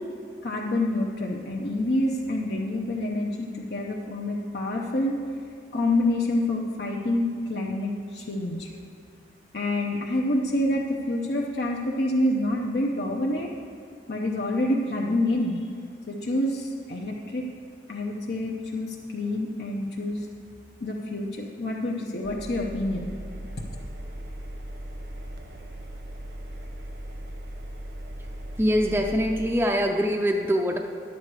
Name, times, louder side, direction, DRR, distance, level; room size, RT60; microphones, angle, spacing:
voice 1, 0.4-5.2 5.7-8.7 9.5-13.5 14.1-15.6 16.1-17.4 17.9-20.3 20.8-23.1 23.6-23.7, left 1 dB, 70° left, -2 dB, 0.7 m, -27 dB
Engine, 22.2-29.5, right 1 dB, 75° right, 1.1 m, -38 dB
voice 2, 28.6-30.8, equal, 10° right, 1 dB, 0.4 m, -23 dB
11.0 x 8.3 x 4.8 m, 2.4 s
head